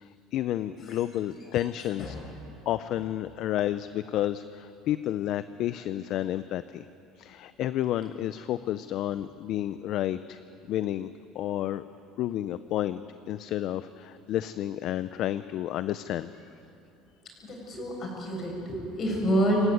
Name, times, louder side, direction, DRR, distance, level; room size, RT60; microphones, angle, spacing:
voice 1, 0.0-2.2 2.7-6.9 7.2-10.4 10.7-11.8 12.2-13.0 13.3-16.3, left 12 dB, 55° left, 13 dB, 0.5 m, -31 dB
voice 2, 17.4-19.7, right 1 dB, 35° left, -1 dB, 7.5 m, -28 dB
27.0 x 16.0 x 9.5 m, 2.8 s
cardioid pair, 145°, 0 cm